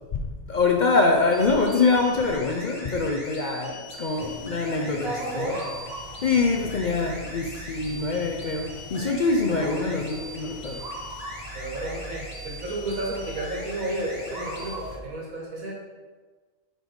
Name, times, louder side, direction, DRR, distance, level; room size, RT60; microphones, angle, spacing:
voice 1, 0.1-5.5 6.2-10.9, left 3 dB, 65° left, 2 dB, 0.4 m, -24 dB
sound 1, 1.3-14.8, left 1 dB, 35° left, 1.6 m, -41 dB
sound 2, 4.2-15.0, right 1 dB, 35° right, 0.9 m, -41 dB
voice 2, 4.6-5.7 6.5-6.6 7.0-7.3 9.5-10.1 11.5-15.7, right 1 dB, 75° right, -3 dB, 2.1 m, -32 dB
5.9 x 5.2 x 4.6 m, 1.4 s
omnidirectional pair, 1.5 m